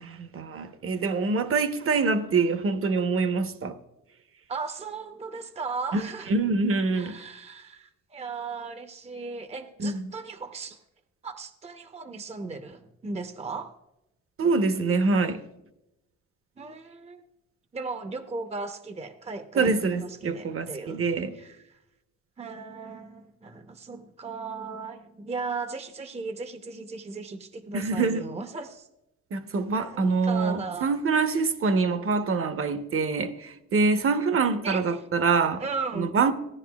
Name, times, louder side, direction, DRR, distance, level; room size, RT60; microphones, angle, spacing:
voice 1, 0.0-3.8 5.9-6.0 6.3-7.2 9.8-10.0 14.4-15.4 19.6-21.4 27.7-28.2 29.3-35.6 36.0-36.3, right 4 dB, 45° right, 1.0 m, -25 dB
voice 2, 4.5-6.3 6.9-10.8 11.2-13.8 16.6-17.2 17.7-21.0 21.3-21.8 22.4-28.9 29.7-30.9 34.6-34.8 35.6-36.1, right 4 dB, 20° right, 0.7 m, -36 dB
16.5 x 10.0 x 2.3 m
cardioid pair, 90°, 30 cm